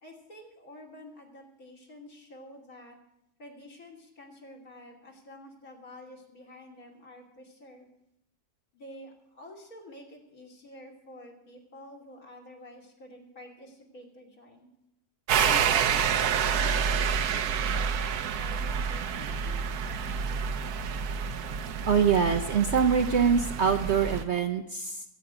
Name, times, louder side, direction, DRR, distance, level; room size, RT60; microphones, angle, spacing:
voice 1, 0.0-3.0 3.4-7.9 8.7-14.7 15.4-19.7, left 1 dB, 60° left, 2 dB, 3.2 m, -49 dB
sound 1, 15.3-24.2, right 7 dB, 75° right, 1.3 m, -28 dB
voice 2, 21.9-25.0, right 6 dB, 55° right, 7 dB, 0.8 m, -24 dB
22.0 x 9.1 x 4.9 m, 0.84 s
omnidirectional pair, 1.7 m